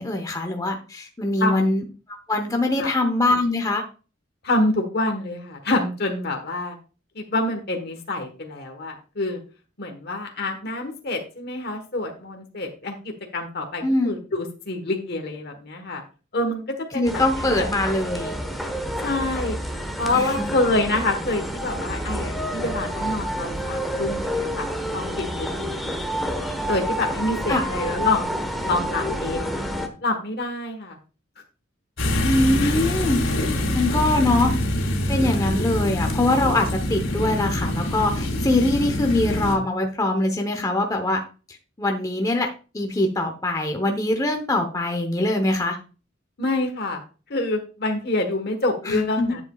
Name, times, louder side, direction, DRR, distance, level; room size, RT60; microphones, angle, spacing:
voice 1, 0.0-1.8 2.3-3.8 13.8-14.1 16.9-18.4 20.1-20.5 27.5-27.7 32.2-34.5 35.1-41.2 41.8-42.5 42.7-45.8 48.9-49.4, left 2 dB, 20° left, 3 dB, 0.9 m, -23 dB
voice 2, 4.4-6.8 7.1-9.4 9.8-16.0 16.3-17.7 19.0-19.6 20.0-24.7 24.9-26.0 26.7-28.4 28.6-29.6 30.0-31.0 32.6-32.8 33.1-33.8 46.4-47.0 47.3-49.4, left 2 dB, 55° left, 4 dB, 1.3 m, -27 dB
sound 1, 17.0-29.9, equal, ahead, 1.1 m, -29 dB
sound 2, 32.0-39.6, left 1 dB, 90° left, 2.3 m, -25 dB
11.5 x 7.6 x 2.3 m, 0.34 s
head